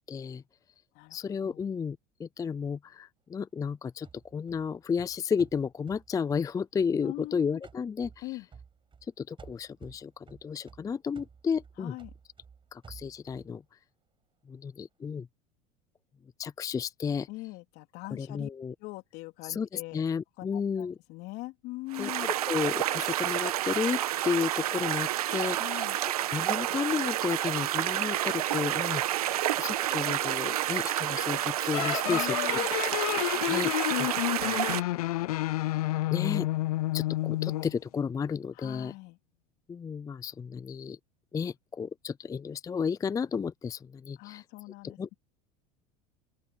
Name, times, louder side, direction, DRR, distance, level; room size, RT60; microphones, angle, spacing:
voice 1, 0.1-0.4 1.1-8.4 9.0-12.0 12.7-13.6 14.5-15.3 16.4-17.3 18.1-18.7 19.4-21.0 22.0-25.9 26.3-29.0 29.5-32.9 33.4-34.1 34.4-35.0 36.1-36.5 36.9-38.9 39.7-41.0 41.3-44.4 44.8-45.1, left 6 dB, 20° left, 0.4 m, -33 dB
sound 1, 4.0-7.3 7.6-9.1 9.4-13.5, right 6 dB, 25° right, 5.6 m, -53 dB
voice 2, 7.0-7.6 8.2-8.5 11.8-12.1 17.3-18.5 18.8-20.0 20.4-22.3 25.5-26.0 32.0-32.7 38.6-39.2 44.2-45.1, left 21 dB, 60° left, 3.6 m, -41 dB
sound 2, 21.9-34.8, right 13 dB, 90° right, 1.2 m, -29 dB
sound 3, 31.7-37.8, left 17 dB, 80° left, 0.6 m, -30 dB
open air
hypercardioid pair, 90°, 19 cm